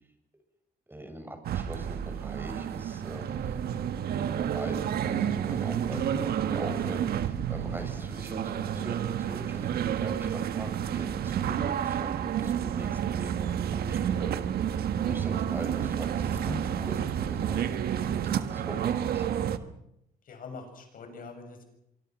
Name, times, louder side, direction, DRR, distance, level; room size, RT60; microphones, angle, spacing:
voice 1, 0.9-3.6 4.1-19.6, right 1 dB, 15° right, 5 dB, 7.3 m, -42 dB
sound 1, 1.4-19.6, right 9 dB, 75° right, 1.6 m, -30 dB
voice 2, 5.9-6.2 16.4-16.6 20.3-21.6, left 5 dB, 60° left, 6 dB, 7.3 m, -41 dB
25.5 x 25.0 x 6.3 m, 0.77 s
cardioid pair, 85°, 16 cm